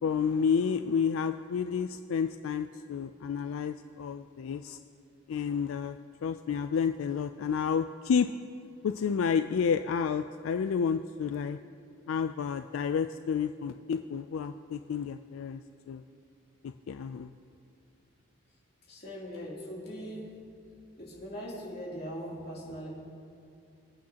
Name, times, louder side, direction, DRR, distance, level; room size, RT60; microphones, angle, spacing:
voice 1, 0.0-4.8 5.3-6.0 6.2-8.3 8.8-11.6 12.1-15.6 15.9-16.0 16.9-17.3, left 6 dB, 85° left, 9 dB, 0.3 m, -30 dB
voice 2, 18.9-20.3 21.0-22.9, equal, 50° left, -5 dB, 3.0 m, -40 dB
25.0 x 8.6 x 2.9 m, 2.5 s
head